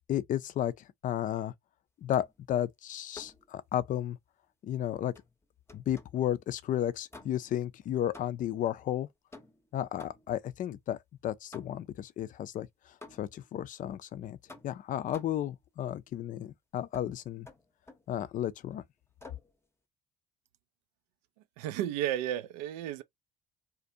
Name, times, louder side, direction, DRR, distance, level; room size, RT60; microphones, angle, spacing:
voice 1, 0.1-1.5 2.0-4.2 4.6-5.1 5.7-9.1 9.7-14.4 14.6-17.5 18.1-18.8, left 11 dB, 45° left, 0.4 m, -33 dB
sound 1, 2.1-2.5 3.1-3.5 5.1-6.3 7.1-7.6 8.1-8.6 9.3-10.5 11.5-12.0 13.0-13.5 14.5-15.5 16.9-17.1 17.4-18.1 19.2-19.5, left 2 dB, 15° left, 0.7 m, -52 dB
voice 2, 21.6-23.0, right 12 dB, 80° right, 0.4 m, -33 dB
2.5 x 2.2 x 2.6 m
hypercardioid pair, 65°, 20 cm